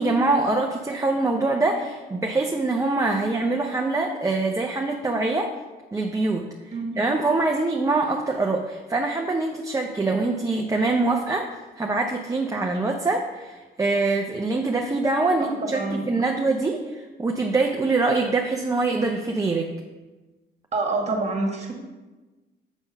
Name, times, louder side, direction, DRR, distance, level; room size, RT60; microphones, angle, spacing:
voice 1, 0.0-5.5 5.9-6.5 7.0-11.5 11.8-19.7, right 3 dB, 15° right, 1 dB, 0.6 m, -24 dB
voice 2, 15.4-16.1 20.7-21.7, right 3 dB, 35° right, 1 dB, 1.6 m, -27 dB
7.2 x 3.6 x 5.5 m, 1.2 s
cardioid pair, 90°, 20 cm